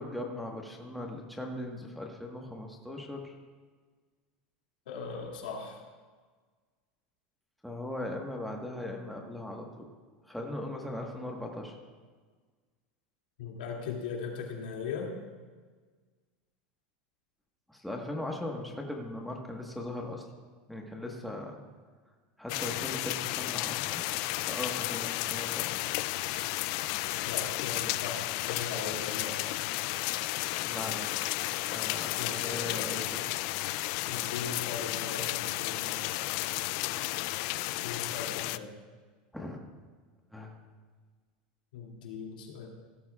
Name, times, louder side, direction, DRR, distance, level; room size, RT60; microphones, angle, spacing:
voice 1, 0.0-3.3 7.6-9.9 10.3-11.7 17.7-20.2 20.7-21.6 22.4-25.9 30.6-31.2 31.7-33.2 39.3-39.6 40.3-40.6, left 1 dB, ahead, 0 dB, 1.4 m, -39 dB
voice 2, 4.9-5.8 13.4-15.1 27.2-29.3 32.2-32.9 34.1-36.0 37.7-38.7 41.7-42.7, left 5 dB, 90° left, -1 dB, 2.4 m, -39 dB
sound 1, 22.5-38.6, left 18 dB, 55° left, 0.3 m, -33 dB
16.5 x 12.5 x 2.4 m, 1.5 s
supercardioid pair, 145°, 5 cm